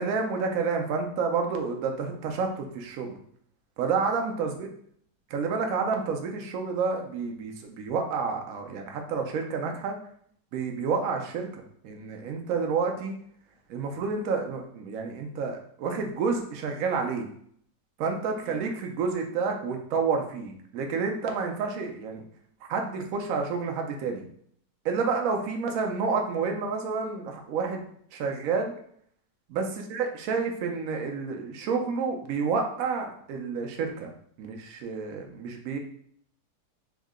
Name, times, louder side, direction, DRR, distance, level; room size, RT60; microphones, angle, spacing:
voice 1, 0.0-3.2 3.8-4.7 5.3-10.0 10.5-13.2 13.7-17.3 18.0-22.2 22.7-24.2 24.8-27.8 28.1-28.7 29.5-34.1 34.4-35.8, right 5 dB, 70° right, 3 dB, 0.9 m, -29 dB
3.6 x 2.1 x 3.5 m, 0.64 s
omnidirectional pair, 1.8 m